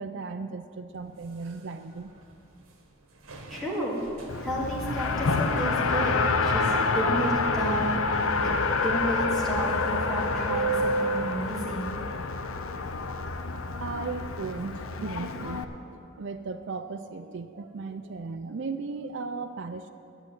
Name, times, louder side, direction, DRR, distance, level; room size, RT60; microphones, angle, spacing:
voice 1, 0.0-2.2 13.8-19.9, right 4 dB, 55° right, 7 dB, 0.4 m, -36 dB
sound 1, 0.9-12.5 13.3-13.4 13.8-14.0 14.6-14.7, right 3 dB, 85° right, 1.6 m, -38 dB
voice 2, 3.5-4.0 4.4-8.0 8.4-8.6 8.8-11.9, equal, ahead, -6 dB, 2.3 m, -32 dB
Race car auto racing, 4.3-15.6, left 3 dB, 80° left, 0.7 m, -28 dB
11.0 x 7.0 x 9.3 m, 2.6 s
head